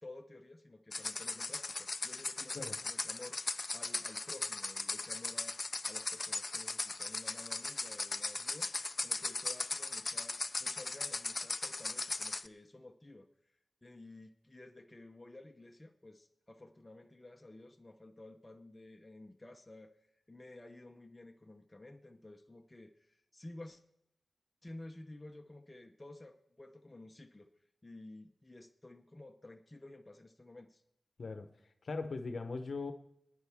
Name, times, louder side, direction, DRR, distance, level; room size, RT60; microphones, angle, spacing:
voice 1, 0.0-3.4 3.7-5.6 5.9-8.7 9.0-13.3 13.8-19.9 20.3-23.8 24.6-27.5 27.8-30.8, left 2 dB, 15° left, 4 dB, 0.8 m, -53 dB
sound 1, 0.9-12.5, left 3 dB, 35° left, 0.4 m, -38 dB
voice 2, 31.8-32.9, left 3 dB, 55° left, 8 dB, 0.9 m, -39 dB
21.5 x 9.9 x 3.6 m, 0.82 s
wide cardioid pair, 125°, 0 cm